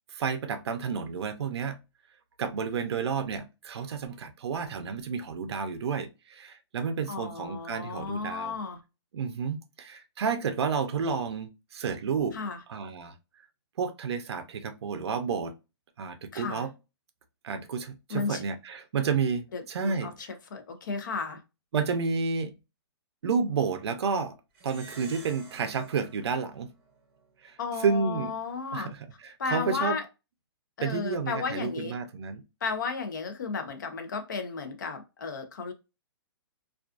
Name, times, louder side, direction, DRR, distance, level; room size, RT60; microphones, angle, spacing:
voice 1, 0.1-1.8 2.4-8.6 9.1-12.4 12.7-13.1 13.8-15.5 16.0-16.7 17.4-20.3 21.7-22.5 23.2-24.4 24.6-26.7 27.4-28.3 28.7-30.0 30.8-32.4, right 5 dB, 75° right, 0.5 m, -31 dB
voice 2, 7.1-8.8 12.3-12.6 16.3-16.6 18.1-18.4 19.5-21.4 27.6-28.9 29.4-30.1 30.8-31.9 32.6-35.7, left 5 dB, 45° left, 0.5 m, -34 dB
Plucked string instrument, 24.5-27.4, right 3 dB, 20° right, 0.7 m, -51 dB
2.4 x 2.3 x 2.4 m
hypercardioid pair, 175°, 14 cm